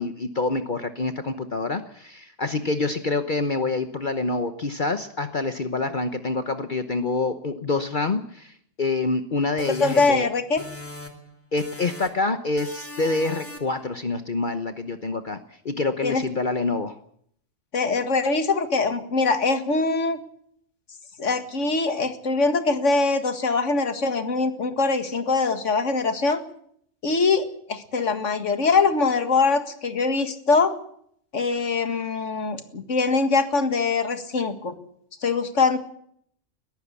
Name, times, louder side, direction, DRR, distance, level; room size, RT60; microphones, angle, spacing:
voice 1, 0.0-10.3 11.5-17.0, left 3 dB, 45° left, 9 dB, 1.2 m, -26 dB
sound 1, 9.6-11.3 11.6-12.3 12.6-13.8, left 2 dB, 10° left, 2.5 m, -39 dB
voice 2, 9.7-10.6 16.0-16.2 17.7-20.2 21.2-26.4 27.0-30.7 31.3-34.7 35.2-35.8, left 4 dB, 75° left, 9 dB, 2.2 m, -23 dB
21.5 x 14.5 x 8.3 m, 0.66 s
omnidirectional pair, 1.3 m